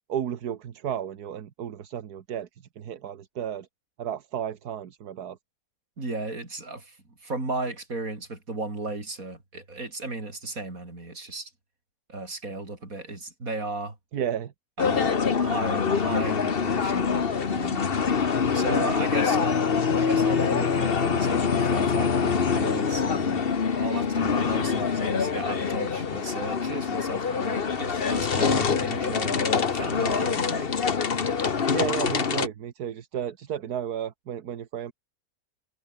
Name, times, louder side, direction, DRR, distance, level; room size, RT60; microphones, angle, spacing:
voice 1, 0.1-3.7 4.0-5.4 14.1-14.5 31.7-34.9, right 9 dB, 80° right, 1.7 m, -33 dB
voice 2, 6.0-7.0 7.2-11.5 12.1-14.0 14.8-17.9 18.5-19.6 20.0-23.4 23.8-30.7, right 2 dB, 60° right, 5.3 m, -35 dB
sound 1, 14.8-32.5, left 6 dB, 40° left, 1.3 m, -25 dB
omnidirectional pair, 1.7 m